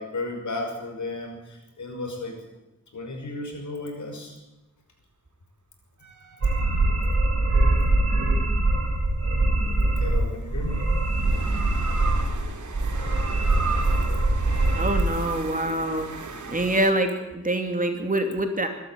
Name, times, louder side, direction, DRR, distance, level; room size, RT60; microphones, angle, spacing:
voice 1, 0.0-2.4 2.9-4.4 9.9-10.9, left 2 dB, 75° left, 3 dB, 5.8 m, -34 dB
sound 1, 6.0-7.5 9.4-16.9, right 4 dB, 80° right, 2.8 m, -37 dB
sound 2, 6.4-10.2 10.5-12.4 12.7-15.0, right 2 dB, 50° right, 4.7 m, -23 dB
voice 2, 14.7-16.1 16.5-18.7, right 1 dB, 25° right, 5 dB, 2.8 m, -25 dB
23.5 x 12.0 x 9.4 m, 0.96 s
wide cardioid pair, 115°, 30 cm